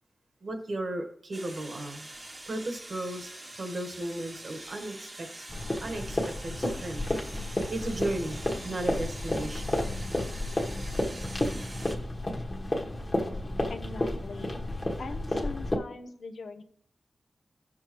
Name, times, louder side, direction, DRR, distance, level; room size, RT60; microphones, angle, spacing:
voice 1, 0.4-2.1 2.5-5.5 5.8-7.0 7.3-9.8, right 1 dB, 55° right, 5 dB, 1.3 m, -35 dB
sound 1, 1.3-12.0, right 1 dB, 30° right, 1.0 m, -45 dB
sound 2, 5.5-15.8, left 1 dB, 25° left, 1.3 m, -31 dB
voice 2, 13.7-14.5 15.0-16.6, left 3 dB, 80° left, 7 dB, 0.7 m, -41 dB
16.0 x 6.4 x 3.1 m, 0.68 s
wide cardioid pair, 125°, 0 cm